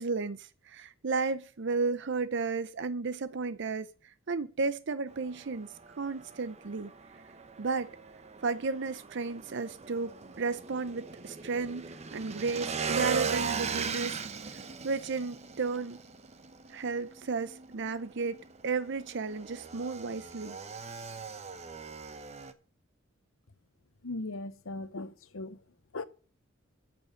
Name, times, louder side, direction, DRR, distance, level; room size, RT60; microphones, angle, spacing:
voice 1, 0.0-5.7 6.0-6.9 7.6-7.9 8.4-14.2 14.8-16.0 16.7-20.6, right 4 dB, 60° right, 0.6 m, -33 dB
Motorcycle / Engine, 5.1-22.5, right 5 dB, 35° right, 0.8 m, -39 dB
voice 2, 24.0-25.6 25.9-26.0, left 2 dB, 80° left, 0.9 m, -38 dB
10.5 x 7.0 x 6.5 m
head